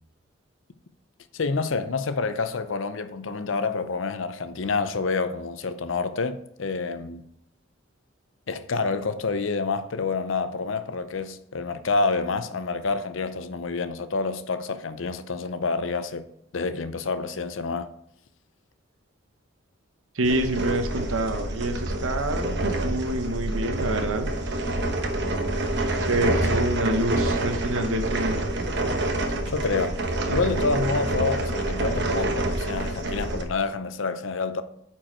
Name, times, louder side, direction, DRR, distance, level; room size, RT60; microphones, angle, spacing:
voice 1, 1.3-7.2 8.5-16.2 16.5-17.9 29.5-30.0 30.3-34.6, left 4 dB, 70° left, 0.6 m, -28 dB
voice 2, 20.1-24.7 26.1-28.5, right 1 dB, 90° right, 1.1 m, -27 dB
sound 1, 20.2-33.4, right 1 dB, 60° right, 1.1 m, -27 dB
8.9 x 4.6 x 4.4 m
head